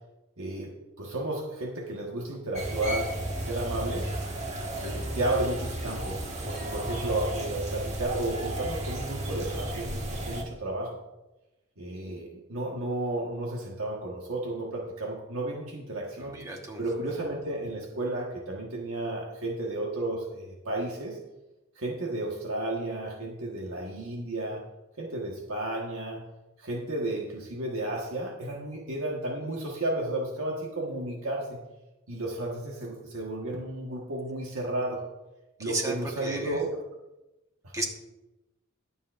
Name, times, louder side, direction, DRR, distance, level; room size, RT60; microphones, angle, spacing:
voice 1, 0.4-4.1 4.8-11.0 11.8-16.3 16.8-21.2 21.8-24.6 25.0-26.2 26.6-31.6 32.1-35.0 35.6-36.7 37.6-37.7, right 1 dB, 80° right, -2 dB, 1.5 m, -33 dB
sound 1, 2.5-10.4, right 1 dB, 30° right, 1.7 m, -33 dB
voice 2, 16.2-16.8 35.6-35.9 36.2-36.6 37.7-37.9, right 2 dB, 15° right, 1 dB, 1.3 m, -33 dB
21.5 x 7.2 x 2.6 m, 1.0 s
head